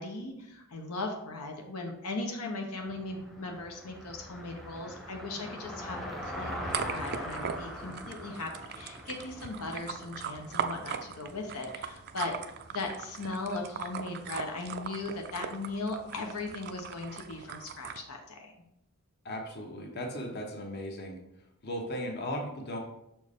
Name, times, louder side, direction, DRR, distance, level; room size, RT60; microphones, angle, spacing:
voice 1, 0.0-8.5 8.8-12.3 12.7-18.5, left 3 dB, 85° left, 2 dB, 0.9 m, -38 dB
Car passing by, 2.7-15.1, equal, ahead, 0.7 m, -43 dB
sound 1, 6.7-18.0, right 7 dB, 45° right, 0.4 m, -40 dB
voice 2, 19.2-21.2 21.6-22.8, equal, 50° left, 2 dB, 1.0 m, -36 dB
6.2 x 4.5 x 3.5 m, 0.83 s
head